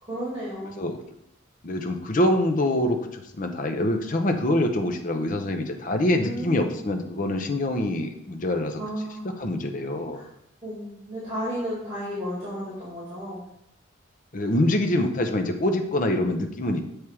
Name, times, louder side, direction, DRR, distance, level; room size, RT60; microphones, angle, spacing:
voice 1, 0.0-0.8 6.2-6.7 8.8-9.3 10.1-10.3 10.6-13.4, equal, 20° right, -9 dB, 2.3 m, -33 dB
voice 2, 1.6-8.8 9.4-10.2 14.3-16.8, left 1 dB, 40° left, 5 dB, 0.6 m, -25 dB
7.1 x 3.2 x 4.7 m, 0.74 s
head